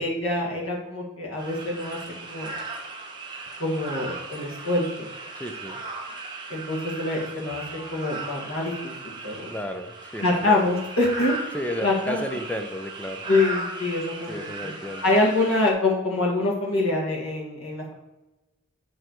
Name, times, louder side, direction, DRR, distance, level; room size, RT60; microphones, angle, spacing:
voice 1, 0.0-2.5 3.6-5.1 6.5-9.5 10.2-11.6 11.8-12.2 13.3-14.7 15.0-17.9, left 2 dB, 75° left, -3 dB, 1.7 m, -25 dB
sound 1, 1.3-15.7, right 2 dB, 20° right, 0.8 m, -37 dB
voice 2, 5.4-5.8 9.5-10.6 11.5-13.2 14.3-15.0, left 1 dB, 5° left, 5 dB, 0.4 m, -33 dB
7.9 x 3.3 x 4.5 m, 1.0 s
head